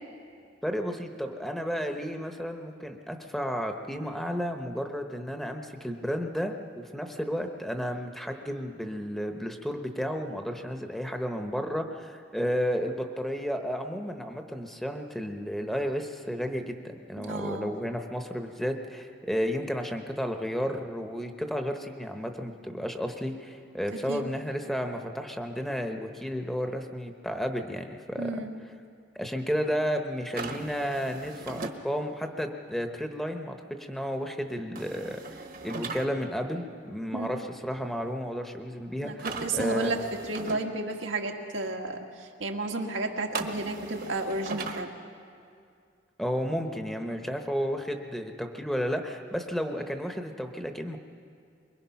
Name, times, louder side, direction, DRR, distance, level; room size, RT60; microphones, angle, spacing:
voice 1, 0.6-28.3 29.1-39.9 46.2-51.0, equal, ahead, 4 dB, 1.0 m, -32 dB
voice 2, 17.2-17.7 23.9-24.2 28.2-28.6 37.1-37.4 39.0-40.0 40.3-44.9, right 2 dB, 90° right, 2 dB, 2.0 m, -32 dB
sound 1, 30.3-31.8 34.8-36.1 39.2-40.6 43.3-44.8, right 3 dB, 45° right, 1.2 m, -38 dB
23.5 x 22.5 x 5.8 m, 2.3 s
head